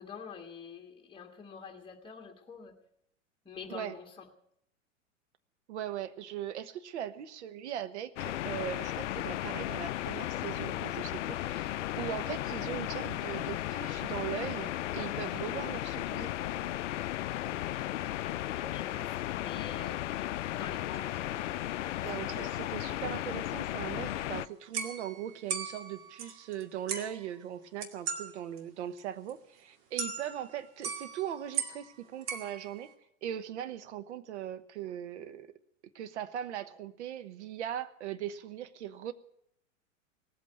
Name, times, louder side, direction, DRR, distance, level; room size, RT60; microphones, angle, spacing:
voice 1, 0.0-2.7 3.5-4.1 18.1-20.0 20.5-21.5, left 6 dB, 15° left, 3 dB, 1.9 m, -47 dB
voice 2, 5.7-16.4 22.0-32.9 33.2-35.5 35.9-39.1, right 10 dB, 60° right, 12 dB, 1.1 m, -39 dB
sound 1, 8.2-24.5, left 14 dB, 65° left, 0.5 m, -35 dB
Laughter, 18.6-19.2 19.4-24.5, equal, 25° right, 5.0 m, -55 dB
Strumming on the broken egg slicer, 24.1-24.3 24.7-26.6 26.9-27.3 27.8-28.3 28.6-28.7 29.0-29.1 29.3-29.4 30.0-30.6 30.8-31.9 32.2-32.9, right 6 dB, 45° right, 2.2 m, -38 dB
18.0 x 8.4 x 9.3 m, 0.74 s
figure-of-eight pair, 95°, 39 cm